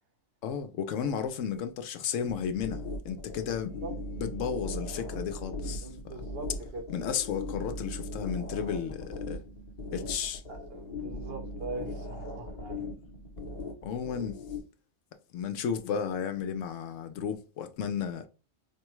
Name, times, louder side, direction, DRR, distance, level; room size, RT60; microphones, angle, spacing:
voice 1, 0.4-3.8 4.2-6.2 6.9-9.4 9.9-10.4 13.8-14.4 15.3-18.3, left 7 dB, 75° left, 0.9 m, -33 dB
sound 1, 2.3-14.6, left 1 dB, 40° left, 0.8 m, -39 dB
voice 2, 5.8-6.5 6.7-6.8 10.5-12.8, right 2 dB, 55° right, 0.9 m, -41 dB
4.8 x 2.3 x 3.0 m
omnidirectional pair, 1.3 m